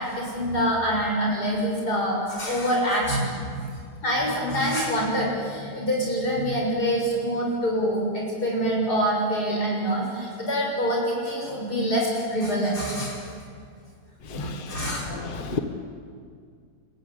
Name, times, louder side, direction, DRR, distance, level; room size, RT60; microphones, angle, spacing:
voice 1, 0.0-3.7 4.0-13.2 14.3-15.1, equal, 80° left, 7.0 m, -25 dB
voice 2, 14.3-15.6, left 5 dB, 35° left, 1.4 m, -33 dB
29.5 x 14.5 x 9.8 m
omnidirectional pair, 1.7 m